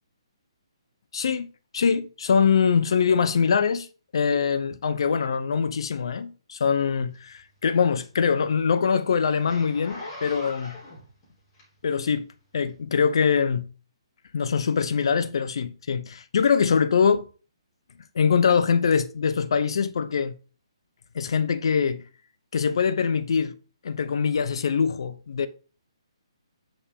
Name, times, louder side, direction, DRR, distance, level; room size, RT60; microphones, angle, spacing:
voice 1, 1.1-3.9 4.1-10.7 11.8-12.3 12.5-13.7 14.3-17.3 18.1-20.3 21.1-22.0 22.5-23.5 23.8-25.5, left 6 dB, 60° left, 0.9 m, -23 dB
Zipper (clothing), 7.1-12.1 12.6-12.8, left 1 dB, 25° left, 3.5 m, -42 dB
8.4 x 5.3 x 3.7 m
hypercardioid pair, 160°, 3 cm